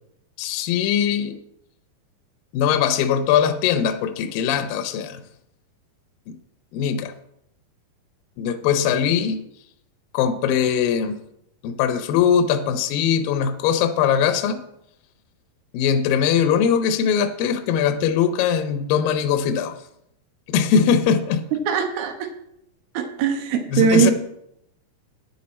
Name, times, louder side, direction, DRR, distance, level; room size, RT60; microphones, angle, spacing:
voice 1, 0.4-1.4 2.5-5.2 6.3-6.4 6.7-7.1 8.4-9.4 10.1-11.2 11.6-14.6 15.7-19.7 20.5-21.4 23.7-24.1, left 8 dB, 75° left, 9 dB, 2.4 m, -21 dB
voice 2, 21.7-22.3 22.9-24.1, right 6 dB, 85° right, 5 dB, 3.1 m, -20 dB
10.0 x 9.6 x 4.3 m, 0.77 s
omnidirectional pair, 4.3 m